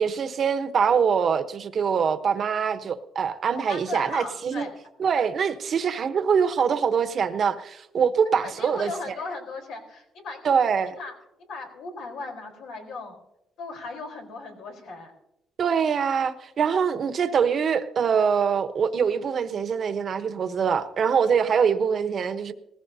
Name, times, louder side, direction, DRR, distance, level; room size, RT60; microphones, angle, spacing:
voice 1, 0.0-4.7 5.0-9.2 10.4-10.9 15.6-22.5, right 6 dB, 55° right, 1.0 m, -24 dB
voice 2, 3.7-4.7 8.4-10.5 11.0-11.1 11.5-13.2 13.6-15.1 21.7-21.8, left 3 dB, 90° left, 3.9 m, -37 dB
19.5 x 15.0 x 2.8 m
cardioid pair, 90°, 0 cm